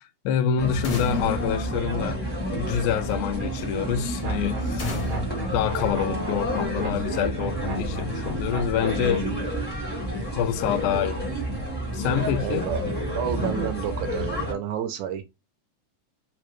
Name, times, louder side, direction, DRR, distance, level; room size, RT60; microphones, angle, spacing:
voice 1, 0.0-2.2 2.5-5.2 5.5-9.3 10.3-11.4 11.9-12.7, left 8 dB, 85° left, 2.0 m, -27 dB
sound 1, 0.6-14.5, equal, 15° left, 0.4 m, -29 dB
sound 2, 0.8-2.6 4.8-6.6, left 2 dB, 65° left, 1.2 m, -35 dB
sound 3, 4.2-9.3, right 2 dB, 60° right, 1.3 m, -37 dB
voice 2, 12.4-12.8 13.2-15.2, right 9 dB, 75° right, 1.8 m, -30 dB
4.9 x 2.1 x 3.0 m
omnidirectional pair, 3.5 m